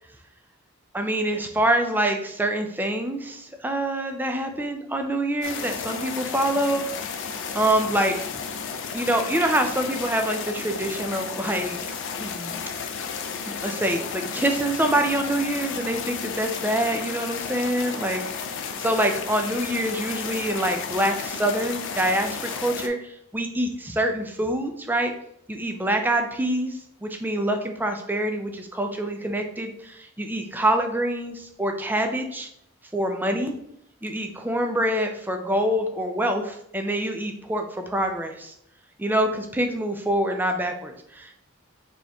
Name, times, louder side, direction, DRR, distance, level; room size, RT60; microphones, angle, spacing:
voice 1, 0.9-6.9 7.5-8.2 8.9-11.8 12.2-12.6 13.5-18.2 18.8-25.1 25.5-32.5 32.9-33.5 34.0-38.5 39.0-41.4, right 1 dB, 10° right, 4 dB, 0.4 m, -25 dB
sound 1, 5.4-22.9, left 6 dB, 60° left, 0.5 m, -33 dB
4.3 x 3.0 x 3.4 m, 0.75 s
head